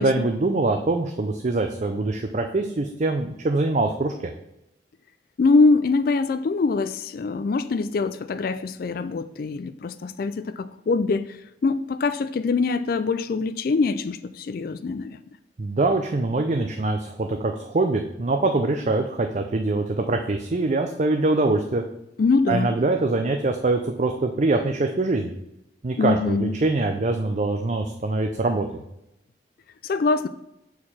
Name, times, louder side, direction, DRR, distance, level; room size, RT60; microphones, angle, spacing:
voice 1, 0.0-4.3 15.6-21.8 22.5-25.3 25.8-28.7, right 2 dB, 40° right, 5 dB, 0.5 m, -23 dB
voice 2, 5.4-15.2 22.2-22.7 26.0-26.6 29.8-30.3, left 4 dB, 50° left, 13 dB, 0.3 m, -23 dB
6.5 x 4.7 x 5.6 m, 0.85 s
head